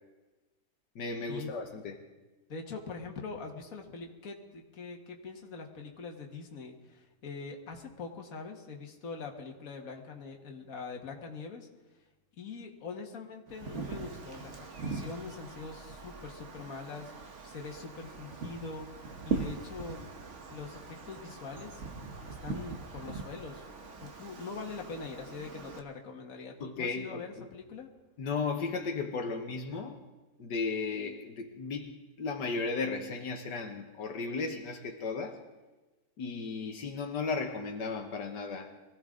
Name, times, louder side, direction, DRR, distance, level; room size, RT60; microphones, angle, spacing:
voice 1, 1.0-2.0 26.6-27.5 28.2-30.0 30.4-31.9 32.2-35.4 36.2-38.7, left 4 dB, 80° left, 3 dB, 1.8 m, -35 dB
voice 2, 2.5-11.7 12.4-17.1 17.4-18.9 19.2-20.1 20.5-21.8 22.2-23.7 24.0-27.9, left 4 dB, 55° left, 2 dB, 2.0 m, -43 dB
Wind, 13.5-25.8, right 4 dB, 45° right, 1.5 m, -41 dB
23.5 x 16.0 x 3.8 m, 1.2 s
omnidirectional pair, 1.8 m